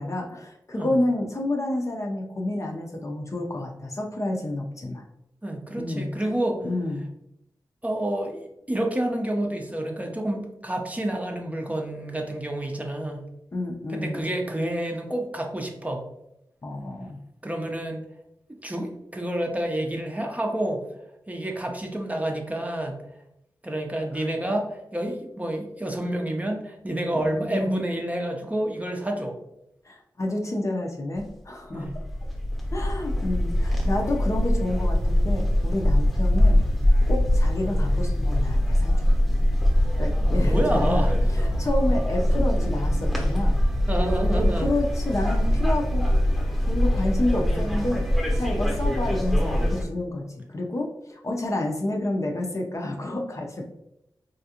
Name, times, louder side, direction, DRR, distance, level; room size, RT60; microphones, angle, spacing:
voice 1, 0.0-5.0 5.8-6.1 6.6-7.0 13.5-14.2 16.6-17.2 24.1-24.3 27.1-27.8 29.8-31.9 32.7-36.6 37.1-39.2 40.0-41.0 41.3-43.6 44.3-46.0 46.6-48.0 48.3-53.6, left 1 dB, 40° left, 1 dB, 0.5 m, -29 dB
voice 2, 5.4-6.6 7.8-13.2 13.9-16.0 17.4-18.0 18.5-20.8 21.3-22.9 23.6-29.4 31.7-31.9 40.2-41.1 43.9-44.7, right 1 dB, 20° right, 2 dB, 0.5 m, -29 dB
sound 1, 31.2-31.3 31.8-49.8, left 1 dB, ahead, 0.9 m, -22 dB
3.3 x 2.4 x 2.7 m, 0.83 s
cardioid pair, 50°, 8 cm